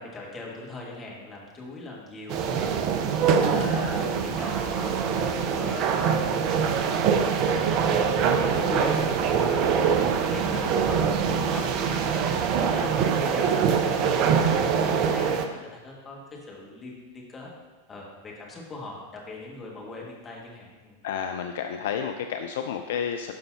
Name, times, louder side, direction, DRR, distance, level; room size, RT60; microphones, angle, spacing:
voice 1, 0.0-14.1 14.5-17.5 17.9-21.0, left 2 dB, 20° left, -3 dB, 1.9 m, -40 dB
sound 1, 2.3-15.5, right 6 dB, 40° right, 0.6 m, -24 dB
voice 2, 21.0-23.3, left 8 dB, 55° left, 6 dB, 0.4 m, -30 dB
12.0 x 5.4 x 2.8 m, 1.2 s
figure-of-eight pair, 90°, 0 cm